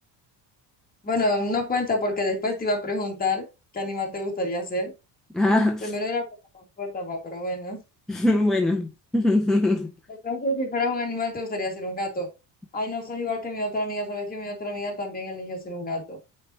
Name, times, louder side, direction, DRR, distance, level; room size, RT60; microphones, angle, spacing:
voice 1, 1.0-3.5 3.7-4.9 5.8-6.3 6.5-7.8 10.1-12.3 12.7-16.2, left 2 dB, 20° left, 1.9 m, -28 dB
voice 2, 5.3-5.9 8.1-9.9, left 2 dB, ahead, 0.4 m, -22 dB
8.6 x 4.3 x 2.8 m
cardioid pair, 160°, 42 cm